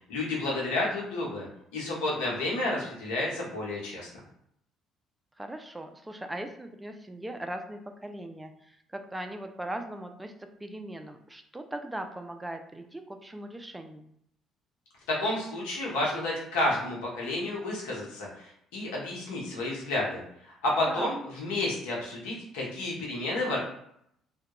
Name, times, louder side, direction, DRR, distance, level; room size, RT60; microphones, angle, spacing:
voice 1, 0.1-1.5 1.7-4.1 15.1-23.6, left 2 dB, 90° left, -3 dB, 0.9 m, -31 dB
voice 2, 5.4-10.3 10.6-14.1 20.9-21.1, right 1 dB, 10° right, 6 dB, 0.3 m, -39 dB
2.2 x 2.1 x 2.9 m, 0.72 s
supercardioid pair, 75°, 0 cm